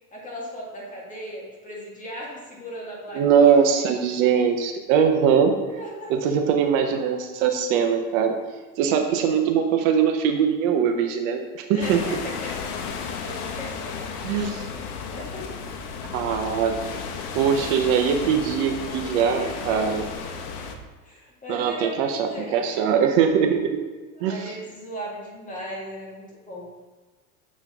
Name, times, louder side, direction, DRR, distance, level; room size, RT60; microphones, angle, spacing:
voice 1, 0.1-3.6 5.7-6.1 11.7-12.7 13.0-14.6 15.1-15.6 15.8-15.9 19.3-20.2 21.0-22.7 24.2-26.7, equal, 15° left, -4 dB, 1.7 m, -37 dB
voice 2, 3.1-5.5 6.1-8.4 8.8-12.0 14.2-14.7 16.1-16.8 17.3-20.0 21.5-23.8 24.2-24.4, right 7 dB, 60° right, 5 dB, 0.8 m, -21 dB
sound 1, 11.8-20.8, left 6 dB, 85° left, 0.9 m, -34 dB
7.0 x 4.4 x 3.5 m, 1.3 s
supercardioid pair, 135°, 45 cm